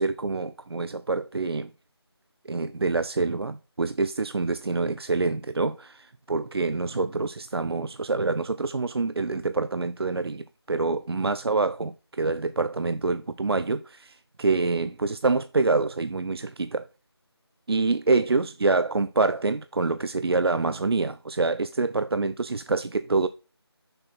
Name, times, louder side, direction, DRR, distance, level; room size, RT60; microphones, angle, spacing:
voice 1, 0.0-1.7 2.4-16.9 17.7-23.3, right 3 dB, 65° right, 0.4 m, -26 dB
6.4 x 4.5 x 4.1 m
figure-of-eight pair, 170°, 14 cm